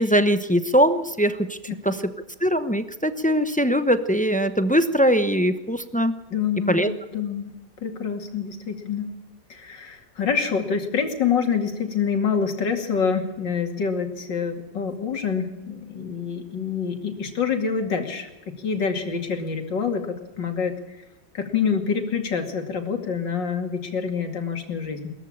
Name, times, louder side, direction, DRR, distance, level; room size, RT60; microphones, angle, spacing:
voice 1, 0.0-1.6 1.8-2.1 2.4-6.2 6.7-6.9, equal, 10° left, 10 dB, 0.5 m, -21 dB
voice 2, 6.3-7.5 7.8-9.1 9.5-18.3 18.6-20.7 21.3-25.1, left 6 dB, 85° left, 5 dB, 3.2 m, -26 dB
21.5 x 14.5 x 8.8 m, 0.97 s
omnidirectional pair, 1.9 m